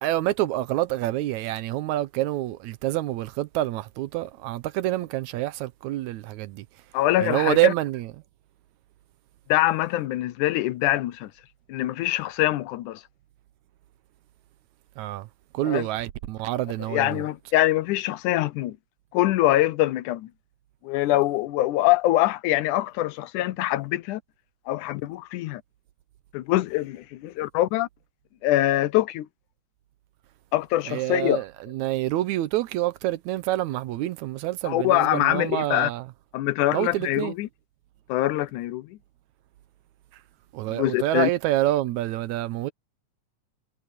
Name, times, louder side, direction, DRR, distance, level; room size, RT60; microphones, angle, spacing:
voice 1, 0.0-6.6 7.2-8.1 15.0-15.3 15.5-17.2 30.9-31.5 31.7-36.0 36.7-37.3 40.5-42.7, right 15 dB, 80° right, 2.0 m, -27 dB
voice 2, 6.9-7.7 9.5-11.3 11.7-13.0 15.6-15.9 16.8-18.8 19.1-20.3 20.8-24.2 24.7-25.6 26.3-27.9 28.4-29.3 30.5-31.4 34.6-35.9 36.3-37.5 38.1-39.0 40.7-41.3, left 15 dB, 85° left, 2.3 m, -24 dB
omnidirectional pair, 3.5 m